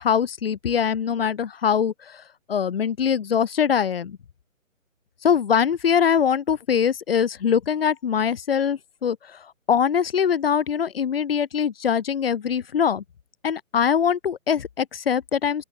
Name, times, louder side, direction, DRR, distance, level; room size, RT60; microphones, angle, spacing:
voice 1, 0.0-2.2 2.5-4.2 5.2-9.2 9.7-13.0 13.4-15.6, left 7 dB, 45° left, 3.7 m, -22 dB
open air
hypercardioid pair, 170°, 41 cm